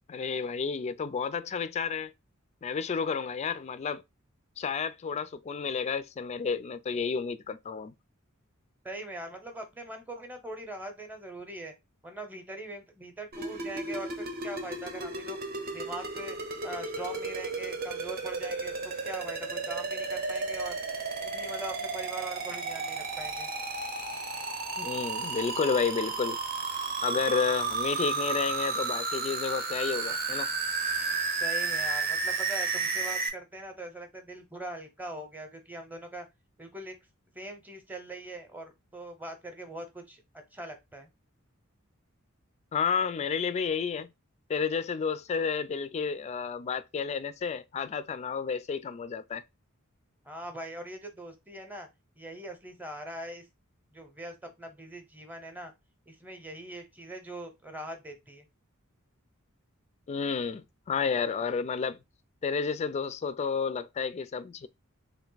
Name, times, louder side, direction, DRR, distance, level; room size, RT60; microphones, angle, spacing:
voice 1, 0.1-2.1 2.6-4.0 4.6-7.9 24.8-26.4 27.0-30.5 42.7-44.1 44.5-49.4 60.1-62.0 62.4-64.7, left 5 dB, 30° left, 0.3 m, -31 dB
voice 2, 8.8-11.7 12.0-15.4 15.7-20.8 21.2-23.5 31.4-36.3 36.6-37.0 37.3-40.2 40.5-41.1 50.2-51.9 52.2-53.4 53.9-55.7 56.1-58.5, right 1 dB, 10° right, 0.8 m, -41 dB
sound 1, 13.3-33.3, right 4 dB, 45° right, 0.7 m, -33 dB
3.4 x 2.5 x 3.9 m
head